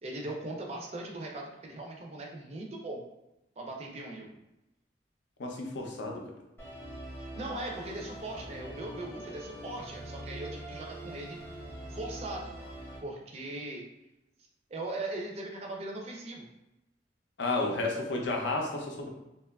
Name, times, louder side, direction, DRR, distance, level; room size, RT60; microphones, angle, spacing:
voice 1, 0.0-3.0 3.6-4.3 7.2-11.4 11.9-12.5 13.0-13.8 14.7-16.4, right 2 dB, 35° right, 0 dB, 0.3 m, -39 dB
voice 2, 5.4-6.2 17.4-19.1, left 2 dB, 75° left, 1 dB, 0.5 m, -32 dB
Musical instrument, 6.6-13.0, right 1 dB, 15° left, 0.6 m, -43 dB
2.8 x 2.2 x 2.2 m, 0.93 s
head